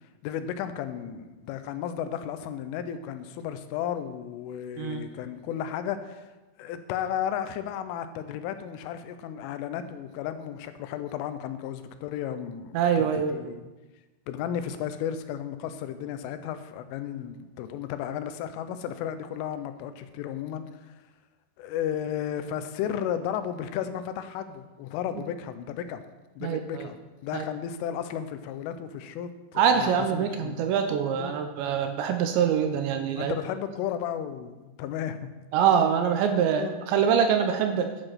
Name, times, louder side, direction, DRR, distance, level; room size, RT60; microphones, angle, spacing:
voice 1, 0.2-6.3 6.6-13.6 14.3-20.9 21.6-26.0 26.4-30.7 31.2-31.4 33.2-35.2 36.6-36.8, left 9 dB, 90° left, 10 dB, 3.3 m, -34 dB
voice 2, 12.7-13.4 26.4-26.9 27.3-27.4 29.6-33.4 35.5-37.9, right 7 dB, 80° right, 6 dB, 2.8 m, -24 dB
11.0 x 7.9 x 5.8 m, 1.1 s
omnidirectional pair, 5.6 m